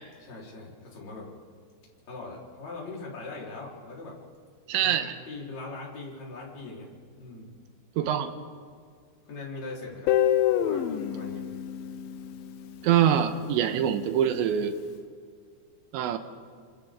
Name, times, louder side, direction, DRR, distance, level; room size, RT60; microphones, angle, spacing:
voice 1, 0.2-1.4 2.1-4.2 4.8-7.5 9.2-10.1 10.6-11.5, left 3 dB, 40° left, -4 dB, 5.0 m, -41 dB
voice 2, 4.7-5.1 8.0-8.3 12.8-14.8 15.9-16.2, right 9 dB, 90° right, 8 dB, 3.3 m, -24 dB
Guitar, 10.1-13.0, left 11 dB, 80° left, 2.1 m, -27 dB
29.5 x 25.0 x 3.7 m, 2.1 s
omnidirectional pair, 5.1 m